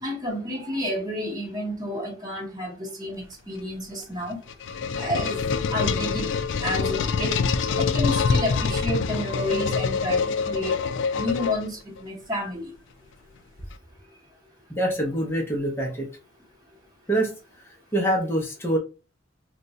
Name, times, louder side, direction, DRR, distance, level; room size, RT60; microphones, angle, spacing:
voice 1, 0.0-4.4 5.0-5.4 5.7-6.3 6.6-7.4 7.8-10.2 10.5-10.8 11.2-12.7, left 1 dB, 20° right, 1.1 m, -30 dB
sound 1, 4.2-12.0, left 5 dB, 65° left, 0.3 m, -25 dB
voice 2, 14.7-16.1 17.1-17.3 17.6-18.8, right 1 dB, 10° left, 0.7 m, -25 dB
2.5 x 2.2 x 4.0 m
head